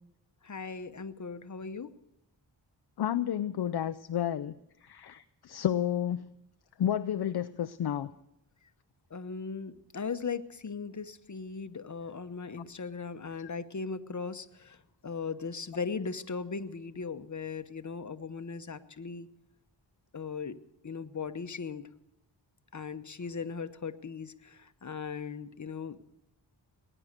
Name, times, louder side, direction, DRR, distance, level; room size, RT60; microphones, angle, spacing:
voice 1, 0.4-1.9 9.1-14.8 15.0-19.3 20.1-20.6 20.8-21.9 22.7-26.0, left 5 dB, 40° left, 0.9 m, -38 dB
voice 2, 3.0-4.5 4.8-6.3 6.8-8.1, left 10 dB, 60° left, 0.5 m, -31 dB
19.5 x 10.0 x 6.6 m
cardioid pair, 50°, 45 cm